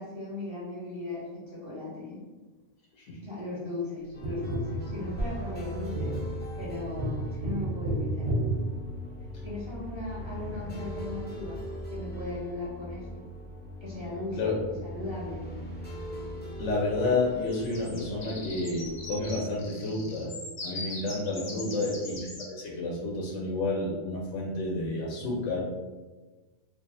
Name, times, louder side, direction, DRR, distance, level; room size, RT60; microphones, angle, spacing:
voice 1, 0.0-2.2 3.2-8.3 9.4-11.6 11.9-13.3 13.8-14.5 14.8-15.4 21.4-21.8, left 2 dB, 20° right, -9 dB, 1.3 m, -37 dB
sound 1, 4.1-19.4, equal, 10° left, 0.5 m, -40 dB
Tap, 4.2-9.5 12.1-12.2, right 1 dB, 65° right, 1.1 m, -33 dB
voice 2, 16.6-20.3 20.6-22.2 22.5-25.6, left 2 dB, 70° left, -4 dB, 1.0 m, -30 dB
sound 2, 17.5-22.5, left 2 dB, 40° left, 0.8 m, -41 dB
4.6 x 2.5 x 2.6 m, 1.3 s
omnidirectional pair, 1.4 m